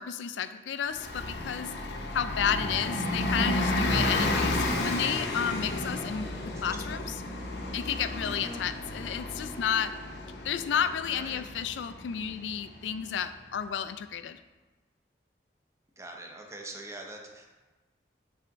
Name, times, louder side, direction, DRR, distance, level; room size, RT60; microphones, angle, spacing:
voice 1, 0.0-1.7 2.1-6.3 6.6-7.1 7.7-9.9 10.4-14.4, left 8 dB, 85° left, 12 dB, 0.3 m, -32 dB
Bus, 0.9-13.2, left 1 dB, 65° left, 0.7 m, -32 dB
voice 2, 6.5-7.0 8.2-8.6 11.1-11.4 16.0-17.5, right 1 dB, 15° right, 1 dB, 0.7 m, -43 dB
7.4 x 3.5 x 3.9 m, 1.2 s
head